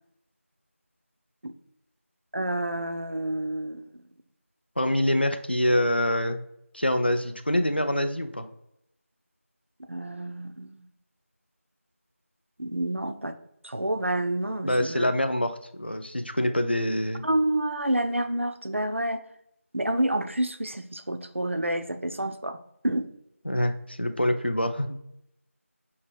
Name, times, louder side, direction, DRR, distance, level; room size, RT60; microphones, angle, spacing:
voice 1, 2.3-3.8 9.9-10.9 12.6-13.4 13.6-15.1 17.2-19.2 19.7-22.6 22.8-23.1, right 1 dB, 60° right, 8 dB, 0.4 m, -28 dB
voice 2, 4.8-6.4 6.7-8.5 14.6-17.2 23.5-25.0, left 1 dB, 45° left, 7 dB, 0.3 m, -25 dB
5.3 x 2.8 x 3.2 m, 0.78 s
figure-of-eight pair, 175°, 8 cm